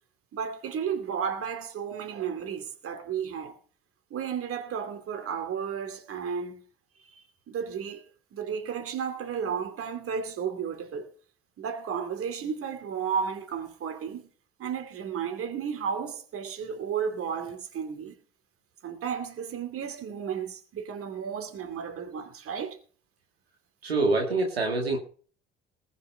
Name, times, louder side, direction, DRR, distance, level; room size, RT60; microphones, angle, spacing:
voice 1, 0.3-3.6 4.1-6.6 7.0-11.1 11.6-14.3 14.6-18.1 18.8-22.8, right 7 dB, 50° right, 2.7 m, -33 dB
voice 2, 23.8-25.0, right 3 dB, 90° right, 2.1 m, -25 dB
19.5 x 6.7 x 5.5 m
figure-of-eight pair, 55°, 30 cm